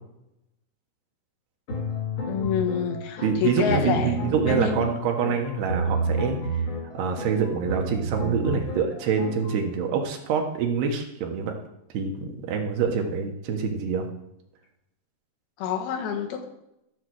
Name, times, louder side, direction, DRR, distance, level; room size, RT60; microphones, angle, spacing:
sound 1, 1.7-9.6, right 1 dB, 50° left, 1.7 m, -30 dB
voice 1, 2.3-4.2 4.5-4.9 15.6-16.5, left 7 dB, 70° left, 3 dB, 3.2 m, -27 dB
voice 2, 3.2-6.7 6.9-11.6 11.9-14.1, right 6 dB, 80° right, 3 dB, 3.2 m, -26 dB
14.5 x 7.2 x 4.7 m, 0.84 s
omnidirectional pair, 4.8 m